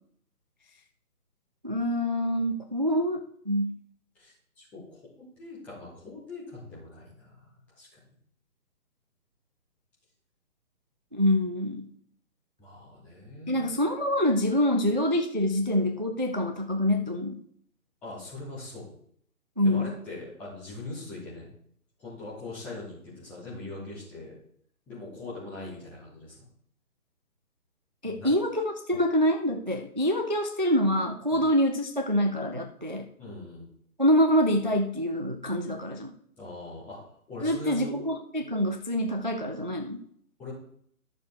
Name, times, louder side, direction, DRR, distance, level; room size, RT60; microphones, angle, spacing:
voice 1, 1.6-3.2 3.5-3.8 11.1-11.9 13.5-17.4 19.6-19.9 28.0-33.1 34.0-36.1 37.4-40.0, equal, 35° right, 4 dB, 0.4 m, -26 dB
voice 2, 4.1-7.4 7.8-8.0 12.6-13.8 18.0-18.9 19.6-21.5 22.0-24.4 24.9-26.3 28.0-28.3 31.3-31.5 33.2-33.6 36.4-37.0 37.3-37.9 40.4-40.5, left 2 dB, 5° left, -8 dB, 0.9 m, -41 dB
11.5 x 6.6 x 3.4 m, 0.66 s
figure-of-eight pair, 140°, 45 cm